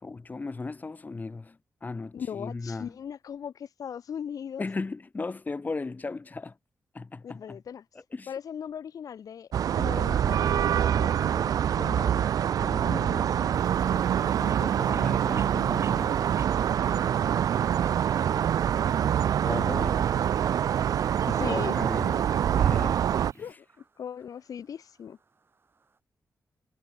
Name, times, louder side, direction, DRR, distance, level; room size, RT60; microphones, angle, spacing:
voice 1, 0.0-3.0 4.6-6.6 6.9-7.6 8.1-8.3 13.9-16.2 19.4-20.1 21.4-22.3 22.6-23.0 23.3-23.5, left 3 dB, 30° left, 1.5 m, -36 dB
voice 2, 2.1-4.7 7.2-7.8 8.3-9.5 9.8-12.3 12.6-13.5 16.3-16.5 21.2-21.8 23.4-23.6 24.0-25.2, left 8 dB, 75° left, 1.3 m, -39 dB
sound 1, 9.5-23.3, right 9 dB, 80° right, 0.4 m, -25 dB
Bird, 13.5-23.5, right 6 dB, 55° right, 5.1 m, -53 dB
sound 2, 18.0-26.0, right 4 dB, 40° right, 3.6 m, -58 dB
wide cardioid pair, 130°, 6 cm